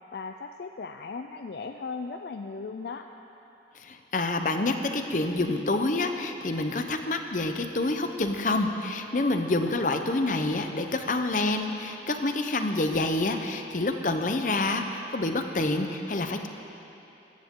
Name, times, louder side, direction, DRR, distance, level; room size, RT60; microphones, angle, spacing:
voice 1, 0.1-3.1, left 4 dB, 65° left, 6 dB, 0.4 m, -37 dB
voice 2, 3.8-16.5, left 2 dB, 45° left, 6 dB, 0.7 m, -27 dB
15.0 x 14.5 x 3.7 m, 3.0 s
head